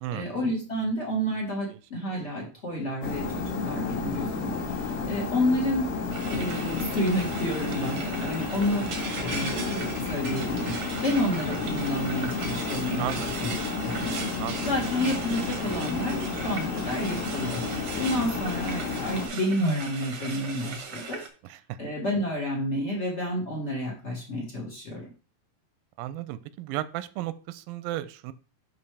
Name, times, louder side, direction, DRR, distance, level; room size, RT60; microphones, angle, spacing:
voice 1, 0.1-5.9 6.3-8.9 9.2-13.5 13.8-14.2 14.6-17.7 18.0-21.2 21.8-25.1, left 1 dB, 50° left, -2 dB, 0.8 m, -30 dB
sound 1, 3.0-19.3, left 4 dB, 90° left, 3.5 m, -32 dB
Frying (food), 6.1-21.3, right 4 dB, 70° right, 1.3 m, -38 dB
voice 2, 13.0-13.3 14.4-14.7 21.4-21.8 26.0-28.3, right 14 dB, 90° right, 14 dB, 2.3 m, -34 dB
11.0 x 4.2 x 3.3 m, 0.37 s
omnidirectional pair, 4.0 m